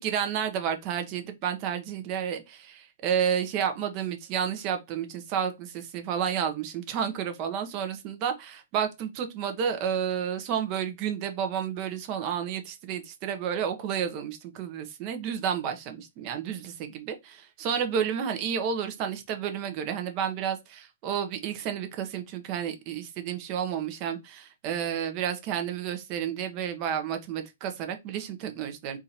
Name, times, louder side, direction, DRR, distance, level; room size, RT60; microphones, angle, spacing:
voice 1, 0.0-29.0, right 8 dB, 35° right, 0.9 m, -31 dB
3.6 x 2.6 x 4.3 m
hypercardioid pair, 140°, 0 cm